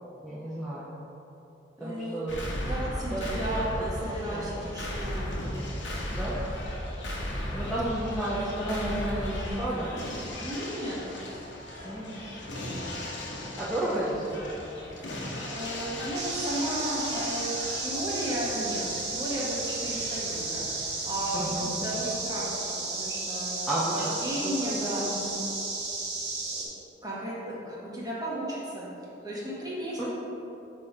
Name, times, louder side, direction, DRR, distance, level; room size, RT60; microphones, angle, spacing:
voice 1, 0.2-0.9 1.8-2.5 3.1-3.6 4.3-4.7 6.1-6.4 7.5-9.9 11.8-12.1 13.6-14.5 21.3-21.7 23.7-25.2 30.0-30.1, right 1 dB, ahead, -9 dB, 0.7 m, -32 dB
voice 2, 1.8-5.4 10.4-11.1 12.5-13.0 15.5-17.5 17.8-20.7 21.0-22.4 22.9-23.6 23.9-25.4 26.6-26.7 27.0-28.9 29.2-30.0, right 1 dB, 20° right, -6 dB, 1.3 m, -34 dB
sound 1, 2.3-22.2, left 1 dB, 70° left, 1.1 m, -36 dB
sound 2, 16.1-26.7, right 3 dB, 60° right, 1.4 m, -33 dB
6.6 x 3.4 x 5.5 m, 3.0 s
head